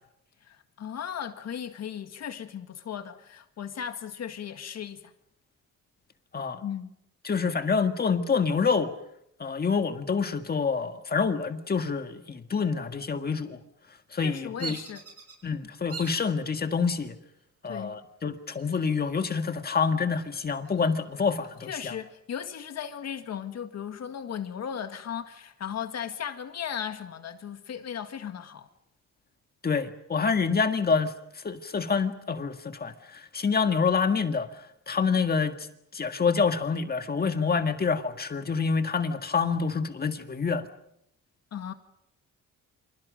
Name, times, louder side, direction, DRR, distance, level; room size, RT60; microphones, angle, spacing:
voice 1, 0.5-5.1 6.6-7.0 14.2-15.0 17.7-18.0 21.6-28.7 41.5-41.7, left 8 dB, 55° left, 1.9 m, -36 dB
voice 2, 7.2-8.9 9.4-13.6 14.1-14.8 15.4-17.2 17.6-21.9 29.6-31.1 31.4-34.5 34.9-35.5 35.9-40.7, left 5 dB, 30° left, 1.7 m, -27 dB
Bird vocalization bird call bird song, 14.6-15.4 15.9-16.3 16.9-17.4 18.6-19.3 19.7-19.8 20.3-21.7, right 5 dB, 50° right, 7.1 m, -42 dB
29.0 x 26.5 x 5.2 m
cardioid pair, 120°, 31 cm